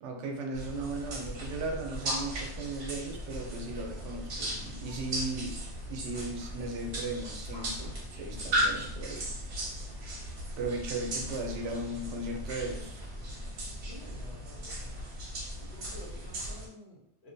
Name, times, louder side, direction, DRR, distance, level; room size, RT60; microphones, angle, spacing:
voice 1, 0.0-5.5 5.9-9.7 10.6-13.1, right 2 dB, 90° right, 2 dB, 0.9 m, -37 dB
sound 1, 0.5-16.7, equal, 60° right, 0.8 m, -37 dB
voice 2, 13.8-15.0 15.6-17.3, left 1 dB, 70° left, -4 dB, 1.1 m, -51 dB
2.6 x 2.1 x 2.6 m, 0.71 s
omnidirectional pair, 1.2 m